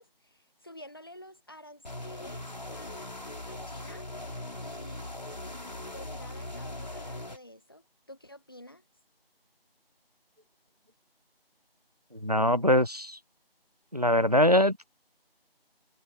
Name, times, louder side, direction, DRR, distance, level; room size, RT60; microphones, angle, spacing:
voice 1, 0.0-4.1 4.6-8.8, left 1 dB, 25° left, 1.4 m, -51 dB
sound 1, 1.8-7.4, left 1 dB, 45° left, 3.6 m, -40 dB
voice 2, 12.1-13.2 13.9-14.8, left 1 dB, 40° right, 0.4 m, -23 dB
figure-of-eight pair, 170°, 30 cm